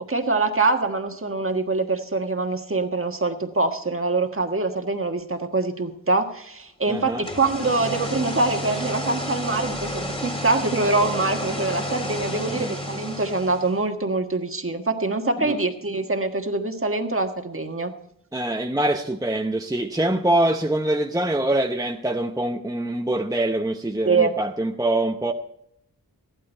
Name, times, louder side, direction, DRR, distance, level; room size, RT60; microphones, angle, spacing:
voice 1, 0.1-17.9 24.0-24.4, right 3 dB, 35° right, 1.5 m, -24 dB
voice 2, 6.9-7.2 12.4-12.7 15.4-15.6 18.3-25.3, right 1 dB, 10° right, 0.8 m, -24 dB
sound 1, 7.1-13.8, left 1 dB, 15° left, 2.0 m, -31 dB
15.0 x 11.5 x 4.5 m
wide cardioid pair, 65°, 36 cm